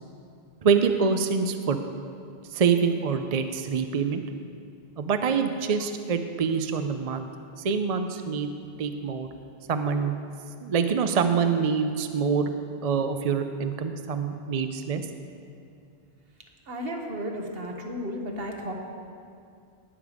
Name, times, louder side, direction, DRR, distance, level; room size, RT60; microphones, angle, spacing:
voice 1, 0.6-1.8 2.5-4.2 5.0-7.3 7.6-8.5 8.8-9.3 9.7-10.2 10.6-12.5 12.8-15.0, right 6 dB, 45° right, 7 dB, 0.5 m, -25 dB
voice 2, 16.7-18.7, equal, 65° right, 2 dB, 1.5 m, -33 dB
19.0 x 6.8 x 5.0 m, 2.4 s
omnidirectional pair, 1.1 m